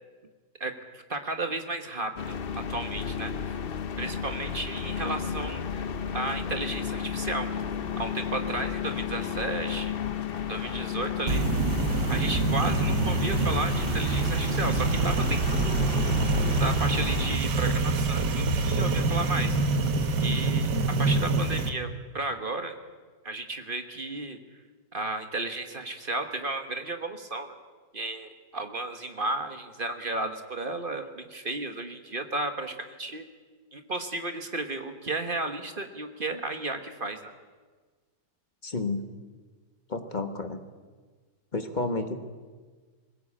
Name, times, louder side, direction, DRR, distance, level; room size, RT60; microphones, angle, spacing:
voice 1, 0.6-3.6 4.0-5.9 6.1-7.5 8.0-10.0 10.5-11.5 12.1-15.9 16.6-19.6 20.2-20.7 21.0-22.7 23.2-24.4 24.9-27.6 27.9-33.2 33.7-37.3, right 2 dB, 35° right, 7 dB, 1.4 m, -33 dB
sound 1, 2.2-17.4, left 7 dB, 50° left, 0.7 m, -33 dB
sound 2, 11.3-21.7, right 3 dB, 75° right, 1.8 m, -26 dB
voice 2, 38.6-39.0 39.9-40.6 41.5-42.2, left 3 dB, 30° left, 8 dB, 1.3 m, -30 dB
20.5 x 17.0 x 8.7 m, 1.4 s
omnidirectional pair, 1.9 m